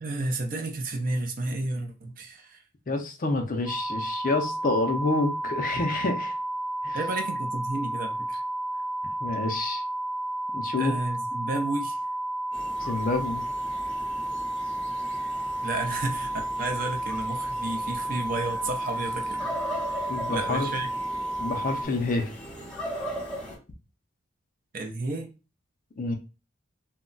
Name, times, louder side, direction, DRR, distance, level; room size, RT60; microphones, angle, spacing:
voice 1, 0.0-2.6 6.9-8.4 10.8-12.0 15.6-16.3 16.6-19.5 19.9-20.0 20.3-20.9 24.7-25.3, right 2 dB, 40° right, 0.5 m, -31 dB
voice 2, 2.9-6.4 6.8-7.0 9.2-9.8 10.5-10.9 12.8-13.5 20.1-20.7 21.4-22.3 26.0-26.1, left 2 dB, 40° left, 0.4 m, -28 dB
sound 1, 3.7-21.9, right 1 dB, 15° right, 1.2 m, -32 dB
sound 2, 12.5-23.6, equal, 5° left, 0.7 m, -40 dB
2.2 x 2.1 x 3.8 m
head